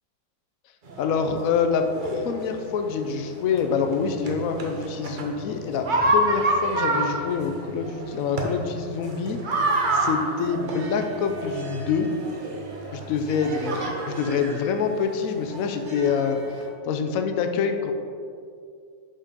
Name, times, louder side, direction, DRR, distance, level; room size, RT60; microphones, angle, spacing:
sound 1, 0.9-16.7, right 1 dB, 45° right, 0.6 m, -29 dB
voice 1, 1.0-9.4 9.9-12.1 12.9-16.4 16.8-17.9, left 6 dB, 70° left, 6 dB, 0.8 m, -26 dB
5.8 x 5.6 x 5.3 m, 2.3 s
omnidirectional pair, 2.0 m